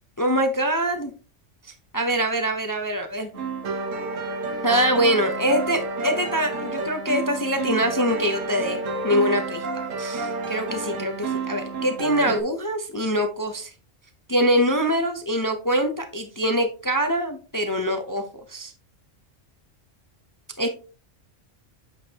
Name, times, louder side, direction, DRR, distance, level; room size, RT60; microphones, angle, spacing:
voice 1, 0.2-1.1 1.9-3.3 4.6-13.7 14.3-18.2 18.5-18.7 20.6-20.7, equal, 25° left, 5 dB, 0.5 m, -24 dB
sound 1, 3.3-12.4, right 3 dB, 80° right, 1.4 m, -30 dB
8.4 x 5.1 x 2.8 m, 0.37 s
omnidirectional pair, 1.3 m